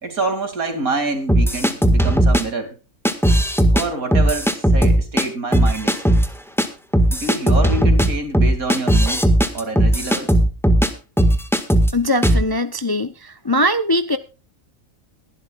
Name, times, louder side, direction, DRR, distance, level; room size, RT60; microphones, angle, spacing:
voice 1, 0.0-2.8 3.7-6.2 7.1-9.2 9.5-10.4, right 3 dB, 80° right, 6 dB, 3.1 m, -26 dB
sound 1, 1.3-2.4 3.0-3.8 4.1-5.2 5.5-6.3 6.6-6.7 6.9-10.9 11.2-11.9 12.2-12.4, right 1 dB, ahead, 1.5 m, -16 dB
voice 2, 11.9-14.2, left 1 dB, 25° left, 10 dB, 0.6 m, -21 dB
22.0 x 11.5 x 2.4 m, 0.32 s
omnidirectional pair, 1.5 m